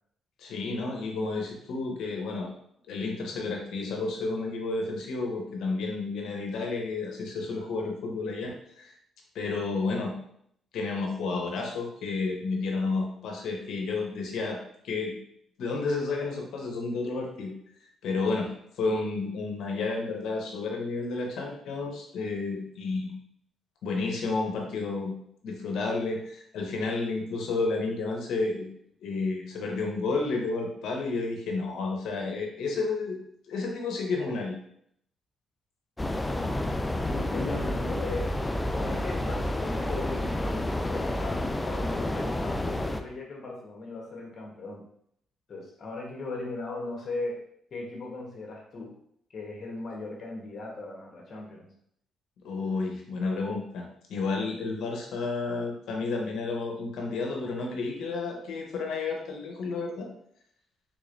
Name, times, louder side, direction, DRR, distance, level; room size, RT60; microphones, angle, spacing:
voice 1, 0.4-2.5 2.9-8.9 9.3-10.2 10.7-14.6 14.8-15.2 15.6-17.5 18.0-18.5 18.8-23.1 23.8-25.1 25.4-28.7 29.0-33.2 33.5-34.5 52.4-53.8 54.1-60.1, left 3 dB, 80° left, 1 dB, 0.8 m, -31 dB
sound 1, 36.0-43.0, left 1 dB, 15° left, 0.3 m, -30 dB
voice 2, 36.2-41.4 41.6-44.8 45.5-47.4 47.7-48.9 49.3-51.7, left 2 dB, 50° left, -1 dB, 1.1 m, -38 dB
3.6 x 3.1 x 2.6 m, 0.69 s
cardioid pair, 90°, 0 cm